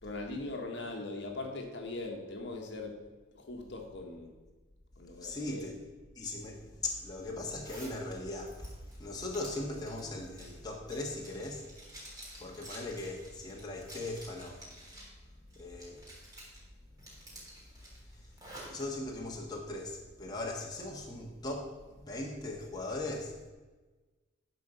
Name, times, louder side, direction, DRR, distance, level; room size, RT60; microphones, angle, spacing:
voice 1, 0.0-3.0 3.3-4.3 5.0-5.7, left 2 dB, 60° left, 2 dB, 1.5 m, -40 dB
voice 2, 5.2-5.8 6.1-8.7 9.0-11.7 12.4-14.7 15.5-16.1 18.6-23.3, left 2 dB, 20° left, -1 dB, 1.4 m, -39 dB
Zipper (clothing), 7.6-8.0 8.4-15.1 15.5-16.6 17.0-18.8, right 1 dB, 15° right, 3.5 m, -51 dB
11.5 x 4.7 x 6.8 m, 1.3 s
head